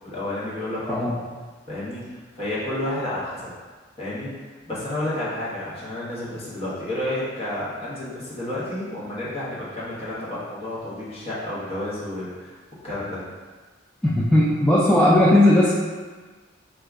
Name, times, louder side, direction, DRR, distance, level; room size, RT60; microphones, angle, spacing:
voice 1, 0.0-1.2 1.7-3.5 4.0-4.3 4.7-12.6 12.8-13.2, left 1 dB, 30° left, -9 dB, 1.0 m, -30 dB
voice 2, 14.0-15.7, left 1 dB, 5° left, -9 dB, 0.3 m, -17 dB
2.7 x 2.4 x 3.4 m, 1.4 s
head